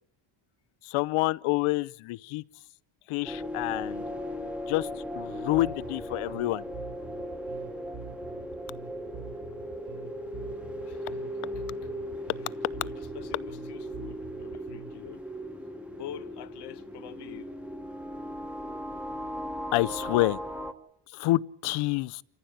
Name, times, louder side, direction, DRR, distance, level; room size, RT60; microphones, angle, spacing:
voice 1, 0.8-2.4 3.1-4.0 4.7-4.9 5.2-6.6 19.7-20.4 21.1-22.2, left 19 dB, 80° left, 0.8 m, -28 dB
sound 1, 3.2-20.7, equal, 5° right, 1.0 m, -37 dB
Bass guitar, 5.5-15.1, right 4 dB, 60° right, 2.6 m, -46 dB
voice 2, 10.9-11.4 11.8-11.9 12.2-12.3 12.7-15.2 15.9-17.6, left 10 dB, 55° left, 1.4 m, -46 dB
28.0 x 14.5 x 8.0 m
cardioid pair, 175°, 49 cm